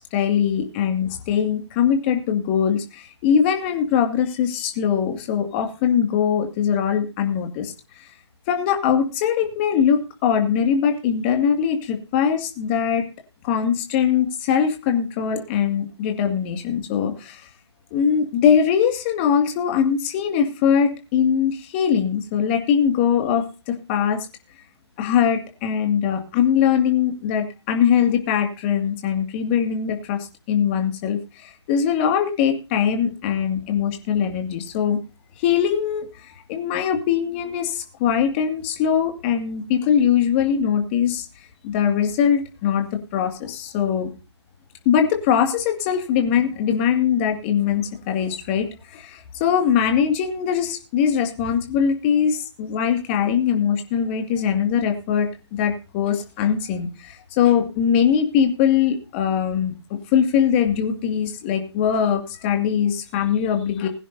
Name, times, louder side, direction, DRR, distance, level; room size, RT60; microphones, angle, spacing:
voice 1, 0.1-7.7 8.5-13.1 13.4-17.5 17.9-24.3 25.0-30.2 30.5-35.0 35.4-41.3 41.6-44.1 44.9-63.9, left 8 dB, 25° left, 4 dB, 2.1 m, -21 dB
20.5 x 9.9 x 2.7 m, 0.32 s
figure-of-eight pair, 150°, 15 cm